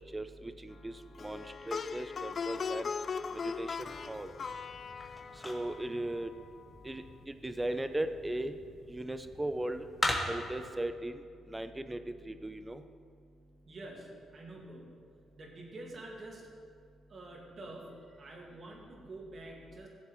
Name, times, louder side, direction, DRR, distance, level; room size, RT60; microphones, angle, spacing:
voice 1, 0.1-2.9 3.4-4.3 5.4-6.3 6.8-8.6 8.9-9.9 10.3-11.2 11.5-12.8, right 1 dB, 15° right, 10 dB, 0.6 m, -37 dB
Plucked string instrument, 1.2-6.4, left 5 dB, 45° left, 0.3 m, -39 dB
sound 1, 3.9-10.7, left 1 dB, 15° left, 1.5 m, -41 dB
voice 2, 13.7-15.0 15.4-16.5 17.1-19.9, right 2 dB, 45° right, 0 dB, 2.0 m, -47 dB
16.5 x 7.2 x 3.1 m, 2.2 s
cardioid pair, 90°, 0 cm